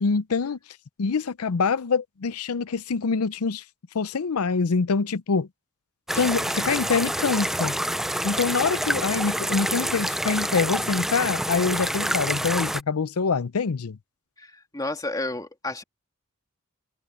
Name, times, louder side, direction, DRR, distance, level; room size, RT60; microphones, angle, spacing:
voice 1, 0.0-0.6 1.0-3.6 3.9-5.5 6.1-7.8 8.2-14.0, left 5 dB, 85° left, 0.6 m, -25 dB
sound 1, 6.1-12.8, right 1 dB, ahead, 0.4 m, -27 dB
voice 2, 14.4-15.8, left 2 dB, 15° left, 2.9 m, -31 dB
head